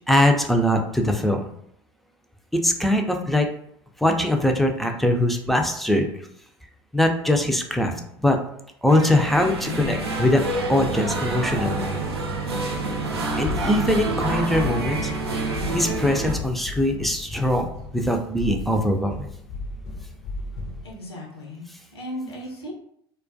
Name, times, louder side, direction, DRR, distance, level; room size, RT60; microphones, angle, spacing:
voice 1, 0.1-1.5 2.5-3.5 4.0-6.1 6.9-7.9 8.2-8.4 8.8-10.4 10.7-11.9 13.4-15.1 15.7-19.3, left 1 dB, ahead, 3 dB, 0.4 m, -22 dB
sound 1, 8.9-16.4, right 2 dB, 85° right, 0.4 m, -27 dB
sound 2, 13.4-20.9, left 3 dB, 55° left, 0.5 m, -35 dB
voice 2, 20.8-22.7, equal, 85° left, -2 dB, 0.8 m, -36 dB
2.3 x 2.1 x 2.5 m, 0.70 s
hypercardioid pair, 70°, 13 cm